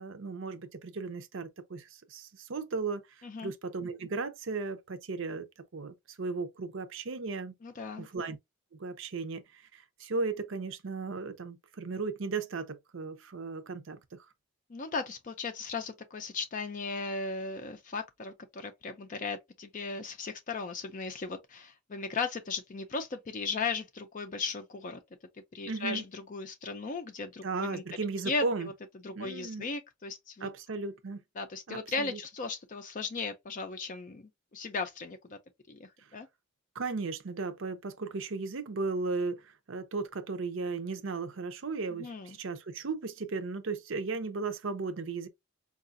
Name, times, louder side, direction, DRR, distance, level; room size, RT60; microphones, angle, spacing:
voice 1, 0.0-3.0 3.4-5.5 5.7-7.5 8.0-8.4 8.8-14.2 25.7-26.0 27.4-28.7 29.1-29.6 30.4-31.2 31.7-32.2 36.7-45.3, right 4 dB, 60° right, 0.6 m, -36 dB
voice 2, 7.6-8.1 14.7-25.0 25.5-27.8 28.3-28.7 29.0-30.5 31.4-35.4 35.7-36.3 41.9-42.4, left 4 dB, 35° left, 0.4 m, -37 dB
4.7 x 2.4 x 2.5 m
head